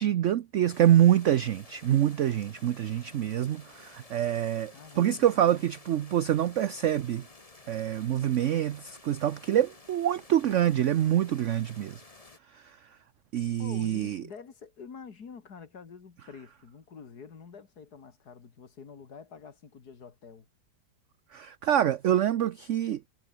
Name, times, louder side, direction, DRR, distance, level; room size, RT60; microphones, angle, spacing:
voice 1, 0.0-7.2 7.7-12.0 12.5-12.8 13.3-14.2 21.3-23.0, right 11 dB, 60° right, 0.8 m, -26 dB
sound 1, 0.7-12.4, left 2 dB, 20° left, 1.9 m, -53 dB
voice 2, 4.7-5.7 13.6-20.5, left 6 dB, 70° left, 2.7 m, -47 dB
omnidirectional pair, 1.8 m